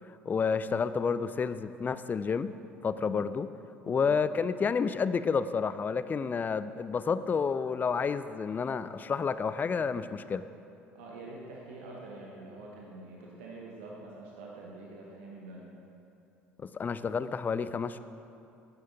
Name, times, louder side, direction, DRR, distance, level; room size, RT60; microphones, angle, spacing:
voice 1, 0.3-2.5 2.8-3.5 3.9-10.4 16.6-18.0, left 5 dB, 25° left, 13 dB, 0.3 m, -30 dB
voice 2, 10.9-15.6, right 2 dB, 70° right, -3 dB, 1.1 m, -46 dB
11.0 x 9.4 x 2.8 m, 2.7 s
figure-of-eight pair, 55°, 7 cm